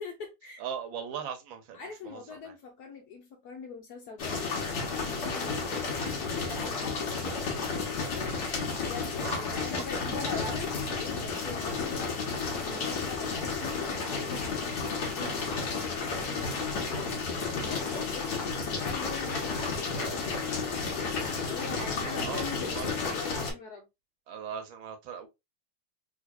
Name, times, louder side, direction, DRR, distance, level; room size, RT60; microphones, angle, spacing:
voice 1, 0.0-0.6 1.7-7.1 8.8-12.1 12.6-13.7 14.3-18.4 18.8-19.9 21.4-23.8, left 4 dB, 85° left, 0.8 m, -43 dB
voice 2, 0.6-2.5 9.2-9.8 10.4-10.6 19.9-20.2 21.8-22.9 24.3-25.3, right 8 dB, 70° right, 1.4 m, -40 dB
sound 1, 4.2-23.5, left 4 dB, 55° left, 1.4 m, -32 dB
3.9 x 2.8 x 2.4 m
omnidirectional pair, 2.4 m